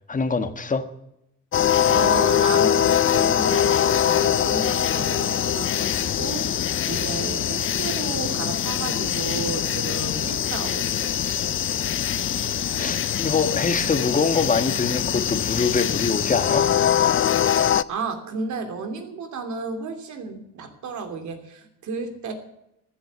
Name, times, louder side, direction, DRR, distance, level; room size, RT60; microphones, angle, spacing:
voice 1, 0.1-0.8 11.6-11.7 12.8-16.7, left 4 dB, 25° left, 9 dB, 1.5 m, -24 dB
sound 1, 1.5-17.8, left 10 dB, 45° left, 0.5 m, -23 dB
voice 2, 1.8-11.1 17.9-22.3, right 4 dB, 70° right, 6 dB, 3.0 m, -32 dB
14.5 x 7.9 x 9.6 m, 0.83 s
cardioid pair, 90°, 30 cm